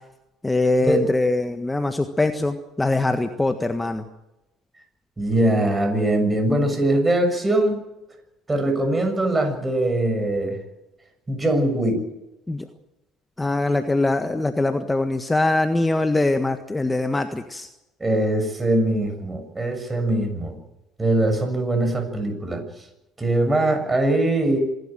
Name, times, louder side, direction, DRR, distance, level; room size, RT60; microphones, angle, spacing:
voice 1, 0.4-4.1 12.5-12.7 13.4-17.7, left 2 dB, 15° left, 7 dB, 1.6 m, -22 dB
voice 2, 5.2-7.8 8.5-10.6 11.3-12.1 18.0-20.6 21.0-22.6 23.2-24.6, right 1 dB, 20° right, 6 dB, 7.0 m, -22 dB
26.5 x 12.0 x 9.1 m, 0.94 s
hypercardioid pair, 65°, 0 cm